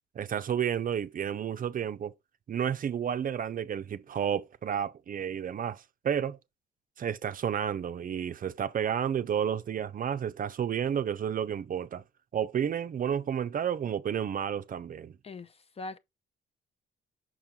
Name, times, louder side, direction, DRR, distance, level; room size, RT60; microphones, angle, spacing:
voice 1, 0.1-2.1 2.5-6.4 7.0-12.0 12.3-15.1, right 8 dB, 45° right, 0.5 m, -31 dB
voice 2, 15.2-16.0, left 2 dB, 30° left, 0.6 m, -41 dB
6.2 x 4.5 x 3.6 m
cardioid pair, 90°, 20 cm